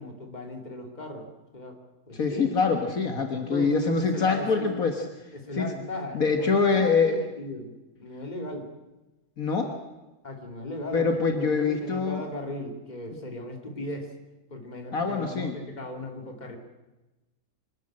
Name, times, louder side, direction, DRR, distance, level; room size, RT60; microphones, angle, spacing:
voice 1, 0.0-1.8 2.1-2.5 3.5-4.8 5.3-8.7 10.2-14.1 14.5-16.6, left 1 dB, 25° left, 3 dB, 2.7 m, -37 dB
voice 2, 2.1-5.0 5.5-5.7 6.1-7.2 9.4-9.7 10.9-12.2 14.9-15.6, left 4 dB, 65° left, 5 dB, 1.9 m, -24 dB
24.5 x 13.0 x 8.7 m, 1.1 s
omnidirectional pair, 1.6 m